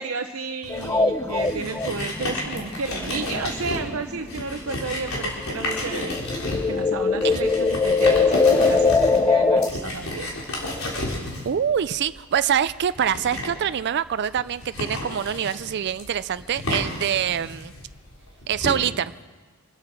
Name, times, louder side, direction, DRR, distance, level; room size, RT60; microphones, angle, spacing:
voice 1, 0.0-6.1 6.7-10.3, right 4 dB, 80° right, 5 dB, 0.8 m, -32 dB
sound 1, 0.6-18.7, left 1 dB, 80° left, 4.0 m, -32 dB
sound 2, 0.7-4.8 5.1-9.7, left 4 dB, 10° left, 0.5 m, -22 dB
voice 2, 11.4-17.7 18.5-19.1, right 8 dB, 55° right, 14 dB, 0.4 m, -25 dB
26.0 x 8.7 x 6.1 m, 1.4 s
head